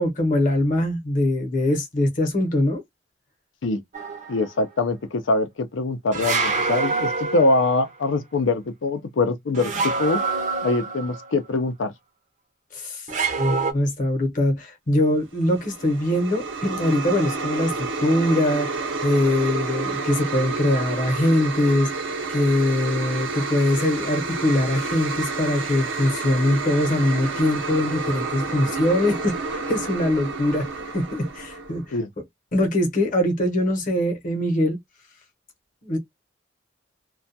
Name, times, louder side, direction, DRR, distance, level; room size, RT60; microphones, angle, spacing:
voice 1, 0.0-2.8 12.7-13.1 13.4-21.9 22.3-30.7 30.9-32.0 32.5-34.8 35.8-36.0, left 1 dB, 45° left, 0.8 m, -22 dB
sound 1, 3.9-4.5 6.1-7.9 9.5-11.3 13.1-13.7, right 4 dB, 40° right, 0.6 m, -26 dB
voice 2, 4.3-10.2 10.6-11.9 31.9-32.1, left 3 dB, 85° left, 0.5 m, -23 dB
sound 2, 15.4-31.8, right 3 dB, 85° right, 0.7 m, -30 dB
2.3 x 2.2 x 2.6 m
head